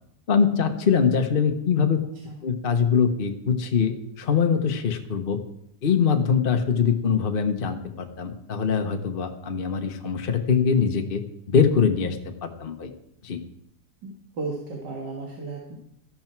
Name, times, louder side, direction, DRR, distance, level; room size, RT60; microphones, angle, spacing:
voice 1, 0.3-2.0 2.4-5.4 5.8-11.2 11.5-12.2 12.4-12.9 13.2-13.4, left 6 dB, 40° left, 5 dB, 0.9 m, -23 dB
voice 2, 14.0-15.7, right 3 dB, 90° right, -1 dB, 2.4 m, -34 dB
14.0 x 11.5 x 4.5 m, 0.77 s
omnidirectional pair, 1.8 m